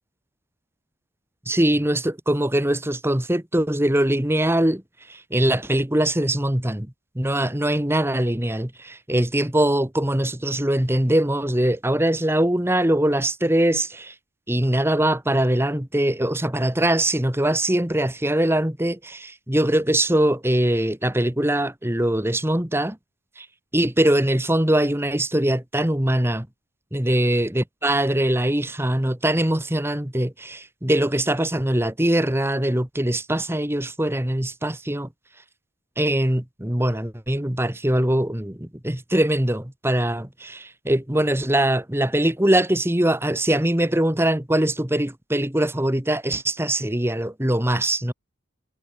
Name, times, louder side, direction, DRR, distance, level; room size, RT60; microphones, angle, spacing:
voice 1, 1.5-4.8 5.1-6.9 7.1-14.1 14.5-23.0 23.4-23.5 23.7-26.5 26.9-35.1 36.0-48.1, right 1 dB, 10° right, 1.3 m, -22 dB
head